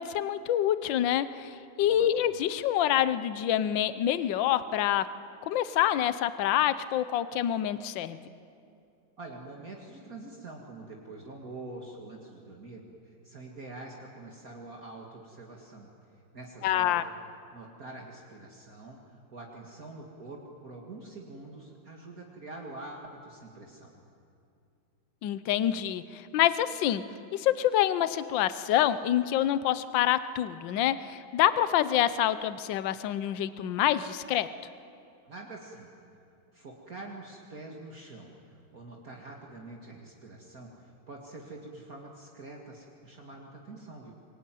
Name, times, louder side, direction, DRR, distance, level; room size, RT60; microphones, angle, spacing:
voice 1, 0.0-5.1 5.4-8.2 16.6-17.0 25.2-27.0 27.3-34.5, left 11 dB, 70° left, 14 dB, 1.5 m, -27 dB
voice 2, 9.2-15.9 16.3-17.0 17.5-24.0 35.2-35.9 36.5-44.1, right 2 dB, 45° right, -1 dB, 2.6 m, -45 dB
25.5 x 22.5 x 9.2 m, 2.5 s
omnidirectional pair, 2.2 m